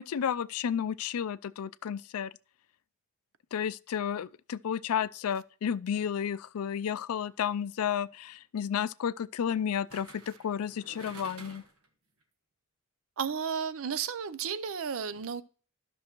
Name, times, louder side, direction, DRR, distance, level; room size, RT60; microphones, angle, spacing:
voice 1, 0.0-2.3 3.5-11.6, left 8 dB, 80° left, 0.4 m, -32 dB
sound 1, 7.3-7.6 9.9-11.9 12.2-12.3, right 3 dB, 85° right, 1.5 m, -50 dB
voice 2, 13.2-15.4, right 6 dB, 65° right, 0.5 m, -33 dB
13.0 x 6.2 x 3.0 m
head